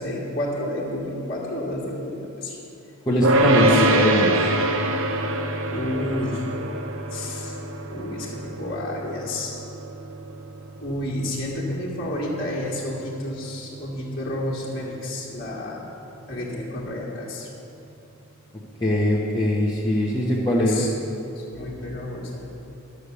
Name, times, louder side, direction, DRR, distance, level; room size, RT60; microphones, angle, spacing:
voice 1, 0.0-2.6 3.3-3.9 5.7-6.5 7.1-7.6 7.9-9.6 10.8-15.8 16.3-17.5 20.6-20.9 21.3-22.6, left 1 dB, 45° left, -6 dB, 1.6 m, -30 dB
voice 2, 3.1-4.5 18.8-20.8, left 1 dB, 20° left, -6 dB, 1.0 m, -21 dB
sound 1, 3.2-14.5, right 1 dB, 65° right, 0.7 m, -26 dB
12.0 x 6.5 x 6.9 m, 2.8 s
head